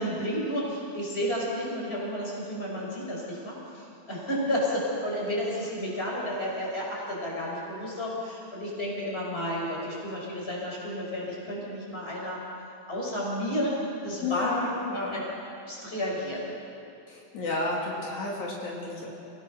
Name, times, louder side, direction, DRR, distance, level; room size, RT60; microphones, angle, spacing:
voice 1, 0.0-12.4 12.9-13.7 14.0-14.6 15.1-15.2 15.6-16.5, equal, 20° left, -4 dB, 5.5 m, -31 dB
voice 2, 14.2-15.2 17.1-19.1, left 3 dB, 75° left, -3 dB, 4.1 m, -32 dB
27.5 x 17.5 x 6.2 m, 2.6 s
omnidirectional pair, 3.4 m